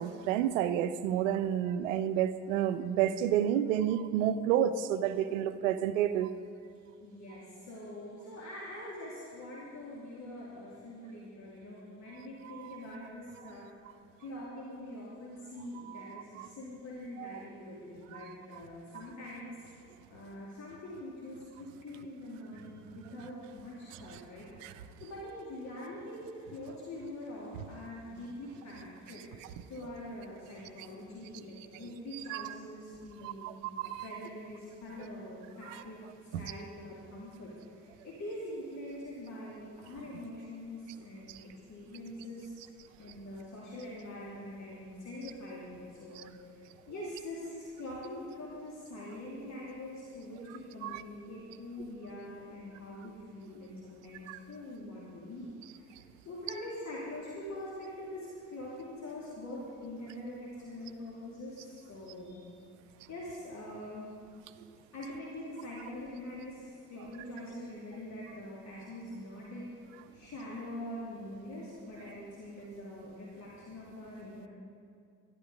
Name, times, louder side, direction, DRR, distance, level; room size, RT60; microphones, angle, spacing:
voice 1, 0.0-6.3 15.9-16.2 17.2-17.3 24.6-24.7 32.3-32.4 33.2-34.0 35.7-35.8 36.3-36.4 50.8-51.0 54.3-54.4, right 10 dB, 75° right, 12 dB, 0.6 m, -30 dB
voice 2, 7.0-13.6 14.2-19.5 20.1-33.5 33.8-36.0 36.3-41.3 41.7-42.6 43.0-46.6 46.9-56.0 56.2-62.4 63.1-64.1 64.9-69.7 70.1-74.5, left 1 dB, 45° left, -6 dB, 2.8 m, -44 dB
13.0 x 11.5 x 5.1 m, 2.4 s
figure-of-eight pair, 50°, 38 cm